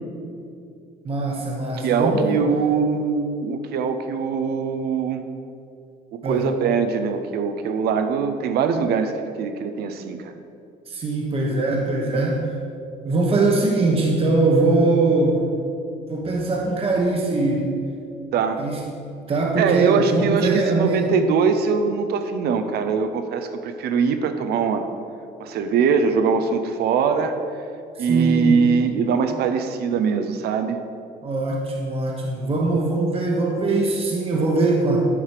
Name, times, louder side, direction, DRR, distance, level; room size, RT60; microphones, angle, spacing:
voice 1, 1.0-2.4 6.2-6.5 10.9-12.4 13.0-15.4 16.1-17.7 18.6-18.8 19.3-21.1 27.9-28.6 31.2-35.1, right 2 dB, 35° right, -1 dB, 1.2 m, -21 dB
voice 2, 1.8-5.2 6.1-9.1 9.4-10.4 18.3-18.6 19.6-24.9 25.4-27.3 28.0-30.8, right 6 dB, 70° right, 8 dB, 0.7 m, -22 dB
10.5 x 5.0 x 4.9 m, 2.5 s
cardioid pair, 110°, 17 cm